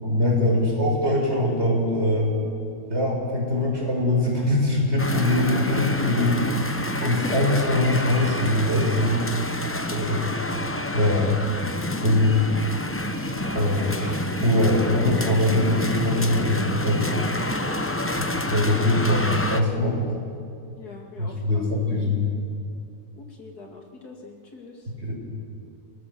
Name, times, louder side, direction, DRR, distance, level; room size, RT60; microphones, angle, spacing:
voice 1, 0.0-2.3 2.9-6.5 7.0-9.3 9.8-10.2 10.9-11.3 12.0-12.4 13.5-17.1 18.5-20.0 21.2-22.2 25.0-25.1, left 1 dB, 45° right, -2 dB, 6.2 m, -22 dB
sound 1, 5.0-19.6, left 1 dB, 10° left, 0.7 m, -28 dB
voice 2, 7.0-7.4 17.0-17.4 17.8-18.3 20.8-21.9 23.1-24.9, left 3 dB, 80° left, 1 dB, 3.0 m, -42 dB
28.5 x 18.5 x 7.1 m, 2.4 s
omnidirectional pair, 1.6 m